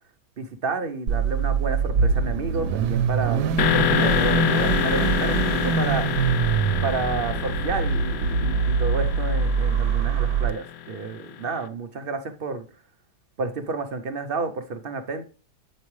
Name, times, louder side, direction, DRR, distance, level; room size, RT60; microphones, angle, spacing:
voice 1, 0.4-3.4 3.7-6.1 6.8-12.7 13.4-15.2, right 4 dB, 55° right, 0.6 m, -30 dB
Car / Idling / Accelerating revving vroom, 1.1-10.5, right 6 dB, 80° right, 1.2 m, -24 dB
sound 1, 3.6-11.4, left 10 dB, 80° left, 1.3 m, -27 dB
8.2 x 5.2 x 3.2 m
omnidirectional pair, 1.8 m